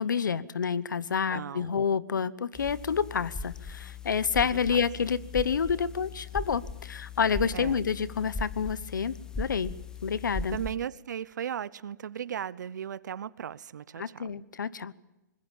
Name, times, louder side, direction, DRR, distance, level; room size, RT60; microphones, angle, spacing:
voice 1, 0.0-9.7 10.0-10.6 14.0-14.9, left 6 dB, 90° left, 19 dB, 1.0 m, -29 dB
voice 2, 1.3-1.8 7.5-7.9 10.5-14.3, right 9 dB, 75° right, 20 dB, 0.8 m, -36 dB
sound 1, 2.5-10.8, left 3 dB, 5° left, 1.0 m, -39 dB
24.0 x 20.5 x 7.3 m, 0.97 s
hypercardioid pair, 140°, 10 cm